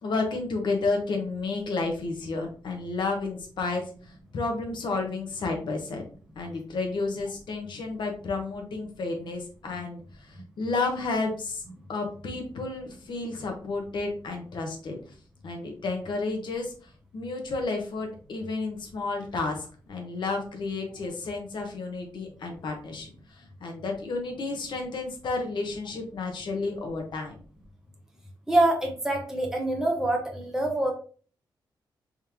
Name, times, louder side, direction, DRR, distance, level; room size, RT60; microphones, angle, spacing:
voice 1, 0.0-3.8 4.3-6.0 6.4-10.0 10.6-11.6 11.9-15.0 15.4-16.7 17.1-23.1 23.6-27.4, left 3 dB, 65° left, 3 dB, 1.0 m, -31 dB
voice 2, 28.5-30.9, right 1 dB, 5° right, 0 dB, 0.9 m, -25 dB
3.7 x 3.2 x 2.9 m, 0.41 s
wide cardioid pair, 150°, 9 cm